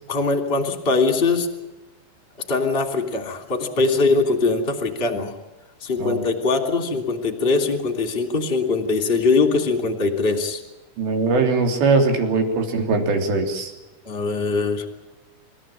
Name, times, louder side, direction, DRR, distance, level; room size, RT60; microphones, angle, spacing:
voice 1, 0.1-1.5 2.5-5.3 5.8-10.6 14.0-14.8, left 3 dB, 15° left, 4 dB, 2.2 m, -21 dB
voice 2, 11.0-13.7, right 3 dB, 60° right, 3 dB, 5.2 m, -21 dB
28.5 x 15.5 x 9.0 m, 1.1 s
omnidirectional pair, 5.8 m